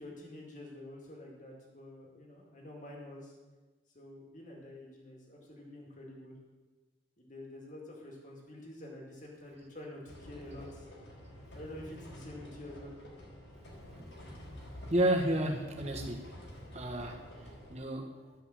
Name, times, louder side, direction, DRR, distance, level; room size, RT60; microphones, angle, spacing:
voice 1, 0.0-3.3 3.9-6.4 7.2-10.9 11.5-12.9, left 1 dB, 40° left, -2 dB, 2.2 m, -48 dB
sound 1, 10.1-17.8, equal, 75° left, 3.6 m, -49 dB
voice 2, 14.6-16.3 16.7-18.3, right 1 dB, 35° right, 1 dB, 1.4 m, -32 dB
13.0 x 5.3 x 7.3 m, 1.3 s
head